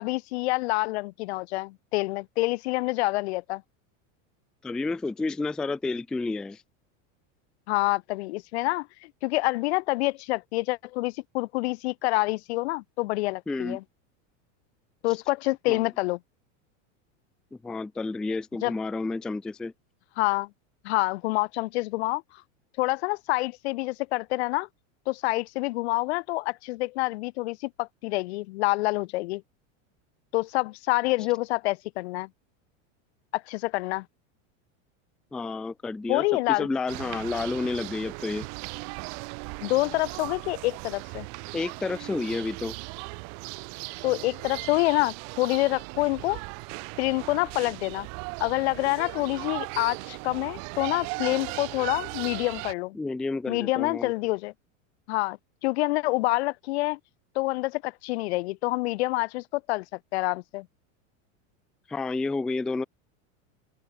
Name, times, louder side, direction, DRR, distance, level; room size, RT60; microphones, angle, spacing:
voice 1, 0.0-3.6 7.7-13.8 15.0-16.2 18.6-18.7 20.2-20.5 20.8-22.2 22.8-24.7 25.1-29.4 30.3-32.3 33.3-34.1 36.1-36.7 39.6-41.3 44.0-46.4 47.0-48.1 48.4-53.0 53.5-54.5 55.1-57.0 57.4-59.8 60.1-60.7, left 21 dB, 55° left, 0.6 m, -27 dB
voice 2, 4.6-6.6 13.5-13.8 15.7-15.9 17.5-19.7 35.3-38.5 41.5-42.7 52.9-54.1 61.9-62.8, left 3 dB, ahead, 0.4 m, -30 dB
sound 1, 36.9-52.7, right 40 dB or more, 40° right, 3.8 m, -38 dB
open air
supercardioid pair, 175°, 39 cm